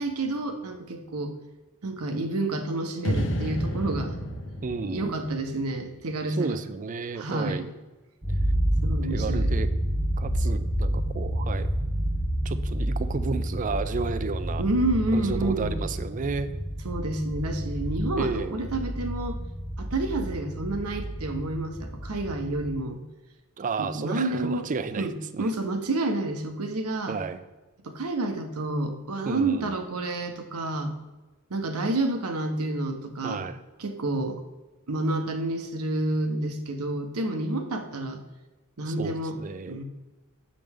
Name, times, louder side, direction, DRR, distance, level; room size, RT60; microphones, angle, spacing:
voice 1, 0.0-1.3 1.8-4.2 4.8-6.6 7.2-7.7 8.8-9.5 14.6-15.8 16.8-19.4 19.8-23.0 23.8-24.7 25.0-27.2 27.8-30.9 31.5-33.4 33.8-34.4 34.9-38.2 38.8-39.4 39.7-39.8, right 2 dB, 80° right, 6 dB, 0.9 m, -29 dB
sound 1, 3.0-6.2, equal, 60° left, 0.9 m, -31 dB
voice 2, 4.6-5.2 6.4-7.7 9.0-9.7 10.2-11.7 12.4-14.6 15.1-16.5 18.2-18.6 23.6-25.5 27.1-27.4 29.2-29.8 33.2-33.6 38.9-39.8, right 4 dB, 35° right, 12 dB, 0.4 m, -32 dB
sound 2, 8.2-22.7, right 1 dB, 15° right, 0.9 m, -29 dB
7.6 x 5.2 x 3.5 m, 1.1 s
head